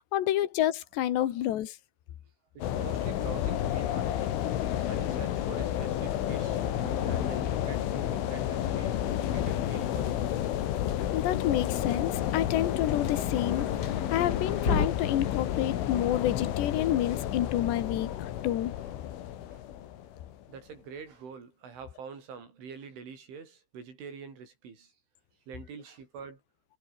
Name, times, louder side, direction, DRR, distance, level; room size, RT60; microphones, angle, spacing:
voice 1, 0.0-1.8 11.1-18.7, left 12 dB, 70° left, 4.1 m, -29 dB
sound 1, 2.6-20.5, left 11 dB, 85° left, 4.7 m, -31 dB
voice 2, 2.6-4.3 4.9-6.6 7.1-10.3 13.9-14.2 19.5-19.6 20.5-24.9 25.5-26.4, right 6 dB, 80° right, 8.6 m, -45 dB
Thunder, 6.2-14.9, left 3 dB, 20° left, 3.9 m, -39 dB
omnidirectional pair, 5.4 m